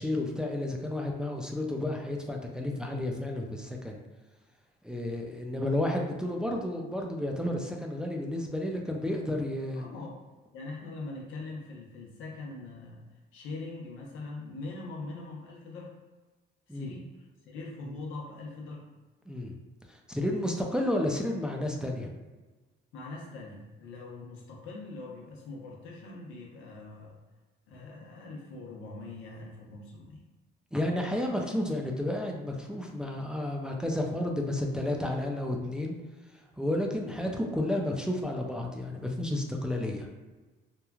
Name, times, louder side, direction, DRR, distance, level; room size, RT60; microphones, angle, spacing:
voice 1, 0.0-4.0 4.8-9.8 16.7-16.9 19.3-19.5 19.9-22.1 30.7-35.9 36.6-40.1, left 1 dB, 5° right, 1 dB, 0.3 m, -31 dB
voice 2, 9.8-10.2 10.5-15.9 16.7-18.9 22.9-27.2 27.7-30.2, left 3 dB, 90° left, -1 dB, 0.7 m, -42 dB
3.0 x 2.2 x 2.3 m, 1.2 s
cardioid pair, 90°, 20 cm